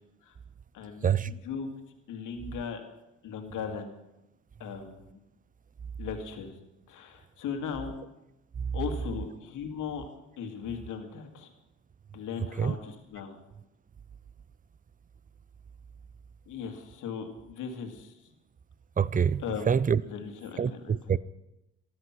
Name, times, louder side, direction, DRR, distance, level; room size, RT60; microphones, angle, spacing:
voice 1, 0.7-1.7 2.1-2.8 3.2-3.9 4.6-5.1 6.0-6.5 6.9-7.9 8.7-10.1 10.4-11.5 12.1-13.4 16.5-18.1 19.4-21.0, left 6 dB, 85° left, 2.2 m, -38 dB
voice 2, 19.0-20.0 20.6-21.2, right 7 dB, 30° right, 0.5 m, -26 dB
13.5 x 12.5 x 5.9 m
cardioid pair, 90°, 30 cm